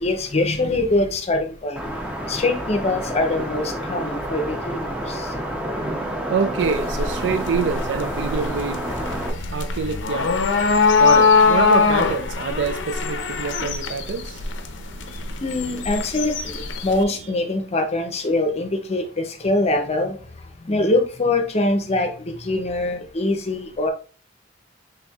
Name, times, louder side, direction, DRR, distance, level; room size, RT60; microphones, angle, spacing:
voice 1, 0.0-1.8 2.3-5.3 15.4-20.2 20.6-23.9, left 2 dB, 35° left, 0.6 m, -23 dB
sound 1, 1.8-9.3, equal, 5° right, 0.7 m, -29 dB
voice 2, 5.8-15.4, right 5 dB, 80° right, 0.4 m, -27 dB
sound 2, 6.6-17.0, left 5 dB, 90° left, 0.5 m, -22 dB
4.2 x 3.4 x 2.3 m
head